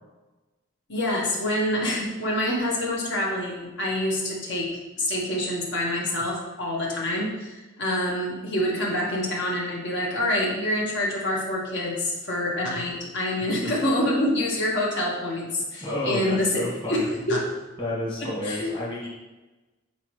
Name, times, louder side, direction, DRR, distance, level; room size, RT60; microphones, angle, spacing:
voice 1, 0.9-4.7 5.0-17.5 18.2-18.7, left 1 dB, 60° left, -4 dB, 1.7 m, -26 dB
voice 2, 15.8-17.1 17.8-19.1, left 1 dB, 25° left, -7 dB, 1.7 m, -30 dB
8.3 x 4.3 x 3.3 m, 1.1 s
head